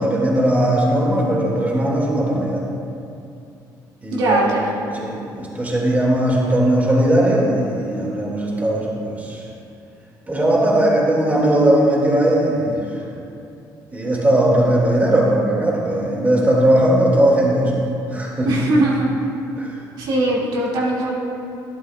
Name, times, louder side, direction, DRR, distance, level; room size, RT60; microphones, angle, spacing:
voice 1, 0.0-2.6 4.0-4.5 4.9-9.4 10.3-13.0 13.9-17.7 18.1-18.5 19.6-19.7, right 1 dB, 20° right, -3 dB, 2.1 m, -18 dB
voice 2, 4.1-4.7 18.5-19.1 20.0-21.1, right 1 dB, 80° right, -5 dB, 2.2 m, -20 dB
12.0 x 11.0 x 2.3 m, 2.6 s
cardioid pair, 100°, 8 cm